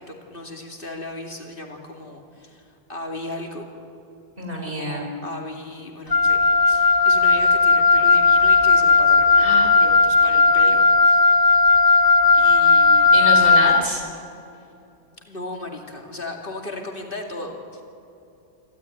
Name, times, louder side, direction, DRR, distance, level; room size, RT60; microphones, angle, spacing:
voice 1, 0.1-3.7 4.7-6.4 6.7-11.3 12.3-13.1 15.2-17.8, left 2 dB, 55° left, 1 dB, 2.7 m, -36 dB
voice 2, 4.4-5.1 9.4-9.7 13.1-14.0, right 1 dB, 55° right, 1 dB, 4.6 m, -27 dB
Wind instrument woodwind instrument, 6.1-13.9, left 4 dB, 30° left, 0.4 m, -16 dB
27.5 x 13.5 x 9.4 m, 2.8 s
omnidirectional pair, 1.1 m